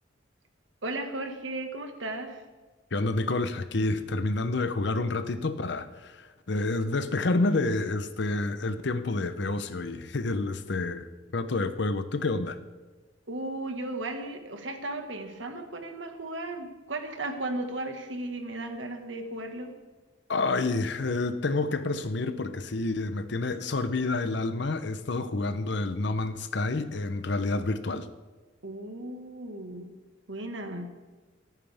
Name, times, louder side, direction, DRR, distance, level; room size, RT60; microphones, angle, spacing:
voice 1, 0.8-2.4 13.3-19.7 28.6-29.9 30.3-30.9, right 2 dB, 75° right, 5 dB, 1.7 m, -35 dB
voice 2, 2.9-11.1 11.3-12.6 20.3-28.1, left 2 dB, 60° left, 11 dB, 0.8 m, -29 dB
27.0 x 9.1 x 3.5 m, 1.3 s
head